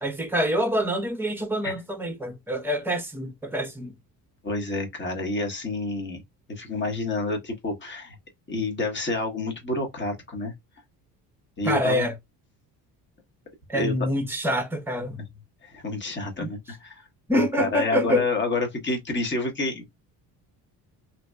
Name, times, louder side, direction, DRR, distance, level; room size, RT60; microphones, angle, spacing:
voice 1, 0.0-3.9 11.6-12.1 13.7-15.2 17.3-18.2, equal, 5° right, 0.8 m, -26 dB
voice 2, 4.4-6.2 6.5-8.2 8.5-10.5 11.6-12.1 13.7-14.1 15.6-16.9 17.3-19.9, left 2 dB, 30° left, 1.2 m, -29 dB
2.8 x 2.7 x 2.3 m
cardioid pair, 105°, 39 cm